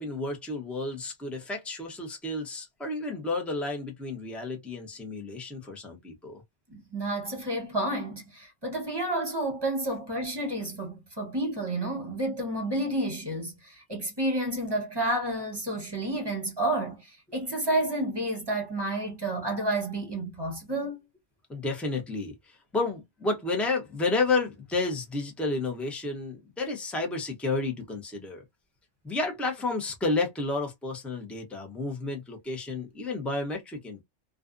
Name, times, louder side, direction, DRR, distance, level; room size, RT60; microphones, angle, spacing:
voice 1, 0.0-6.4 21.5-28.4 29.0-34.0, left 3 dB, ahead, 0.5 m, -31 dB
voice 2, 6.7-21.0, right 1 dB, 20° right, 1.0 m, -30 dB
2.4 x 2.4 x 2.4 m
omnidirectional pair, 1.3 m